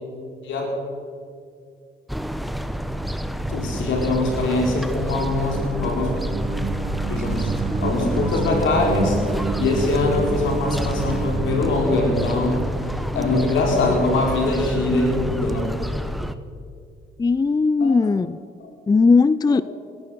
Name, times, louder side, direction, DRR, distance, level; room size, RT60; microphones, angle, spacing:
sound 1, 2.1-16.3, equal, ahead, 0.9 m, -28 dB
voice 1, 3.5-6.1 7.1-7.5 7.8-9.2 9.6-12.6 13.1-15.7 17.8-18.0 18.6-18.7 19.5-19.6, left 2 dB, 75° left, 0 dB, 4.1 m, -22 dB
sound 2, 4.7-13.5, right 5 dB, 40° right, 1.1 m, -30 dB
voice 2, 17.2-18.4 18.9-19.6, left 4 dB, 20° left, 17 dB, 0.4 m, -18 dB
18.0 x 12.5 x 6.3 m, 2.3 s
supercardioid pair, 60°, 20 cm